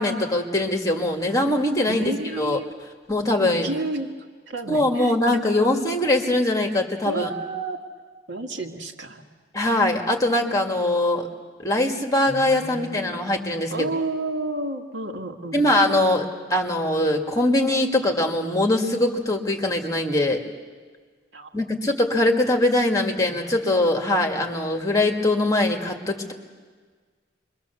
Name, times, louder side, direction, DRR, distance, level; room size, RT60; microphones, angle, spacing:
voice 1, 0.0-2.0 2.4-2.6 3.1-3.7 4.7-7.3 9.5-11.3 11.6-13.9 15.5-20.4 21.5-26.3, left 1 dB, 20° left, 2 dB, 2.0 m, -22 dB
voice 2, 1.9-2.7 3.4-4.1 4.5-5.2 7.1-7.8 8.3-9.2 12.3-13.3 13.7-15.6 21.3-21.5 23.2-23.5, right 2 dB, 75° right, 3 dB, 2.1 m, -31 dB
28.5 x 23.0 x 7.0 m, 1.5 s
head